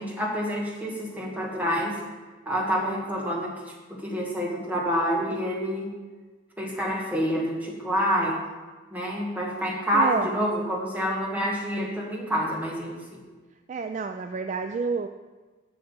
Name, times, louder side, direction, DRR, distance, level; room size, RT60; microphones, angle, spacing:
voice 1, 0.0-2.0 2.4-3.5 3.9-5.9 6.6-8.4 8.9-12.9, equal, 10° right, -2 dB, 1.7 m, -27 dB
voice 2, 9.9-10.3 13.7-15.1, right 4 dB, 35° right, 7 dB, 0.3 m, -29 dB
7.9 x 6.4 x 7.2 m, 1.3 s
head